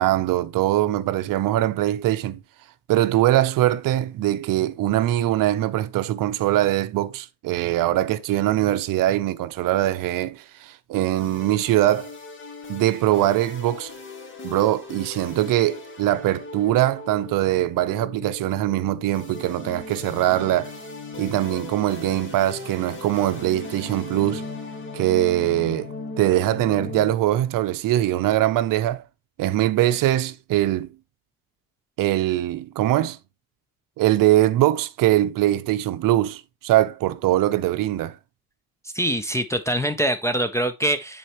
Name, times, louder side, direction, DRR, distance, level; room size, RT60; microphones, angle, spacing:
voice 1, 0.0-2.4 2.9-12.1 12.7-13.9 14.4-20.7 21.2-24.5 24.9-25.9 26.2-29.0 29.4-30.9 32.0-33.2 34.0-38.2, right 14 dB, 60° right, 0.7 m, -22 dB
sound 1, 11.1-27.1, left 4 dB, 30° left, 1.7 m, -38 dB
voice 2, 38.9-41.2, right 1 dB, 10° left, 0.4 m, -24 dB
9.8 x 4.3 x 3.0 m
cardioid pair, 130°, 38 cm